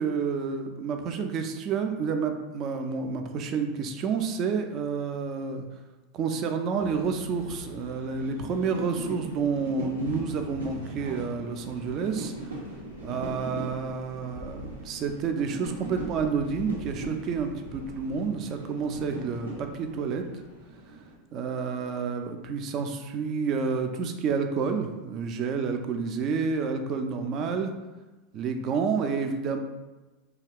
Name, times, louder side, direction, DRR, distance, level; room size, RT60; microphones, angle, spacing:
voice 1, 0.0-5.6 6.1-12.3 13.0-20.2 21.3-27.7 28.3-29.6, right 5 dB, 40° right, 5 dB, 0.3 m, -29 dB
sound 1, 6.8-21.2, right 1 dB, 90° right, 0.7 m, -40 dB
2.3 x 2.3 x 3.4 m, 1.2 s
figure-of-eight pair, 85°, 0 cm